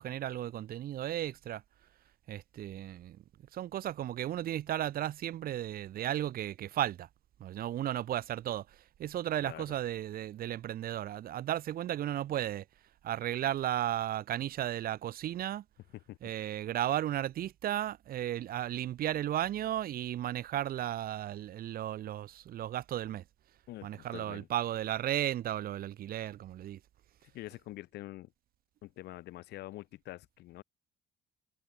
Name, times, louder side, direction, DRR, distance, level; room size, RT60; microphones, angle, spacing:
voice 1, 0.0-1.6 2.3-3.2 3.5-7.1 7.4-12.6 13.0-15.6 16.2-23.2 23.8-26.8, right 12 dB, 60° right, 1.7 m, -34 dB
voice 2, 9.4-9.8 15.9-16.2 23.7-24.5 27.3-28.3 28.8-30.6, left 16 dB, 80° left, 3.2 m, -46 dB
cardioid pair, 110°, 17 cm